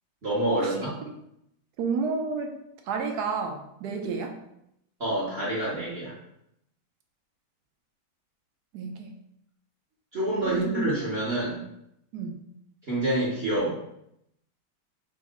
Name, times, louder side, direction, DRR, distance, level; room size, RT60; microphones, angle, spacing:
voice 1, 0.2-0.9 5.0-6.1 10.1-11.6 12.9-13.8, right 1 dB, 40° right, -7 dB, 1.4 m, -27 dB
voice 2, 1.8-2.6 2.9-4.4 8.7-9.1 10.4-10.9 12.1-12.4, right 4 dB, 75° right, 4 dB, 1.1 m, -30 dB
5.3 x 2.6 x 3.6 m, 0.78 s
omnidirectional pair, 1.9 m